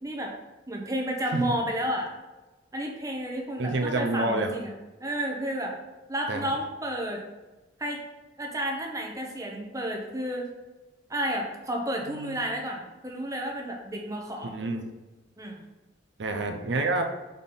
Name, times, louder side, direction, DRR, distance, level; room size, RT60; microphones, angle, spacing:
voice 1, 0.0-0.3 0.7-2.1 2.7-4.7 5.0-5.8 6.1-7.2 7.8-8.0 8.4-10.5 11.1-14.5 15.4-15.6, equal, 15° right, 1 dB, 0.8 m, -31 dB
voice 2, 3.6-4.5 6.3-6.5 14.4-14.9 16.2-17.0, right 2 dB, 65° right, 5 dB, 0.6 m, -28 dB
5.2 x 4.2 x 5.5 m, 1.1 s
head